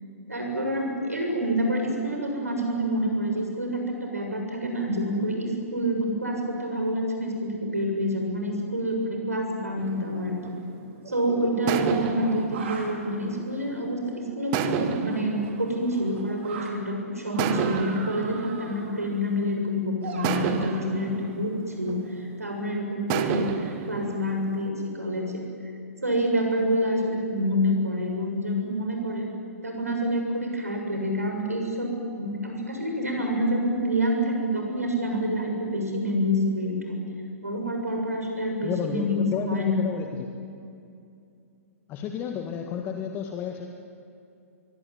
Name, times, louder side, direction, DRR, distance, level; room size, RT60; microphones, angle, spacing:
voice 1, 0.3-10.4 11.1-25.4 26.0-29.3 29.6-37.0 37.4-39.7, equal, 80° right, 2 dB, 6.8 m, -27 dB
sound 1, 9.8-11.1 11.7-13.9 14.5-16.7 17.4-19.6 20.2-22.5 23.1-24.7, right 8 dB, 35° right, 1.7 m, -32 dB
sound 2, 11.0-12.9 14.0-16.7 17.2-19.1 20.0-21.3, right 4 dB, 50° right, 4.8 m, -41 dB
voice 2, 38.6-40.3 41.9-43.7, left 7 dB, 25° left, 4 dB, 1.9 m, -32 dB
25.5 x 22.5 x 9.4 m, 2.5 s
figure-of-eight pair, 115°, 8 cm